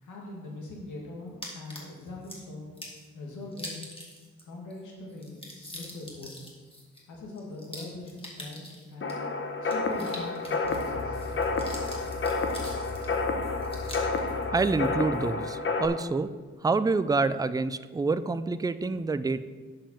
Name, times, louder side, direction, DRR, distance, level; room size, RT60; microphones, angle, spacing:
voice 1, 0.0-2.7 3.1-3.8 4.5-6.5 7.1-9.2 9.6-11.3, left 2 dB, 85° left, -2 dB, 1.9 m, -42 dB
sound 1, 1.4-2.4 2.8-3.1 3.5-4.4 4.7-4.8 5.1-9.1 9.6-10.9 11.2-13.1 13.6-14.2, left 1 dB, 20° left, 2.2 m, -44 dB
sound 2, 9.0-15.9, left 3 dB, 45° left, 1.0 m, -30 dB
sound 3, 10.6-15.6, left 3 dB, 65° left, 0.8 m, -40 dB
voice 2, 14.5-16.3 16.6-19.4, right 3 dB, 15° right, 13 dB, 0.4 m, -27 dB
7.4 x 5.3 x 7.1 m, 1.4 s
cardioid pair, 80°, 29 cm